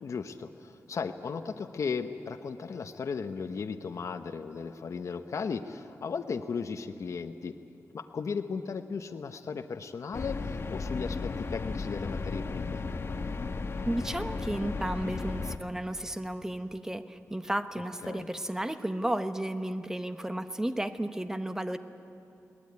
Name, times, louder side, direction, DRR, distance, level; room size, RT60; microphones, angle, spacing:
voice 1, 0.0-7.6 7.9-12.8 18.0-18.3, left 5 dB, 65° left, 7 dB, 0.8 m, -36 dB
sound 1, 10.1-15.6, left 4 dB, 45° left, 1.0 m, -34 dB
voice 2, 13.9-21.8, right 1 dB, 10° right, 9 dB, 0.9 m, -33 dB
21.5 x 18.5 x 9.5 m, 2.8 s
wide cardioid pair, 135°, 6 cm